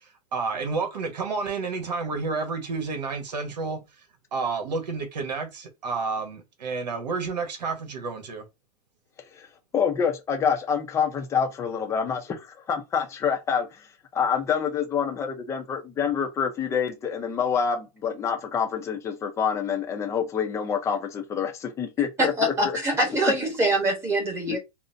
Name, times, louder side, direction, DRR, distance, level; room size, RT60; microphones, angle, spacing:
voice 1, 0.3-3.9 4.3-8.4, right 4 dB, 80° right, 1.3 m, -30 dB
voice 2, 9.7-22.8 24.5-24.6, left 7 dB, 15° left, 0.5 m, -27 dB
voice 3, 22.2-24.6, right 1 dB, 15° right, 1.0 m, -24 dB
3.8 x 2.1 x 2.6 m
hypercardioid pair, 145°, 21 cm